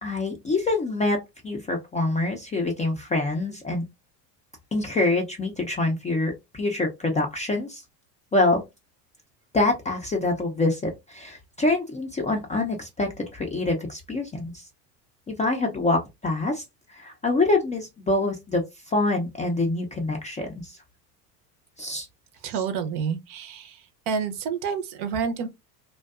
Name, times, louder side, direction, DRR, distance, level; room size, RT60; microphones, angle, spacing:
voice 1, 0.0-3.8 4.7-7.8 8.3-8.6 9.5-14.6 15.3-16.6 16.9-20.8 21.8-22.1, left 2 dB, 15° left, 0.4 m, -25 dB
voice 2, 22.4-23.8 24.1-25.5, right 6 dB, 55° right, 0.6 m, -28 dB
2.5 x 2.2 x 2.3 m
hypercardioid pair, 80°, 50 cm